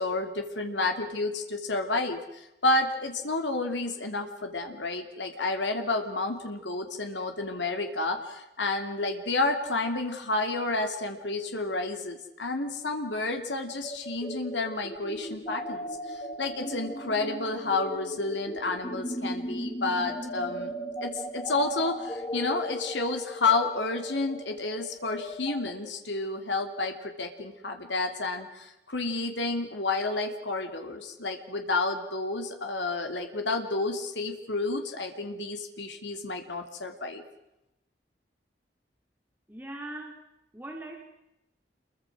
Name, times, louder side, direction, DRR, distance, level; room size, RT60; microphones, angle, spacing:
voice 1, 0.0-20.7 21.0-37.2, left 3 dB, 85° left, 5 dB, 2.9 m, -30 dB
sound 1, 13.8-25.7, equal, 25° left, 1.6 m, -37 dB
voice 2, 39.5-40.2 40.5-41.0, right 1 dB, 10° right, 1 dB, 2.5 m, -40 dB
28.0 x 23.0 x 6.2 m, 0.90 s
head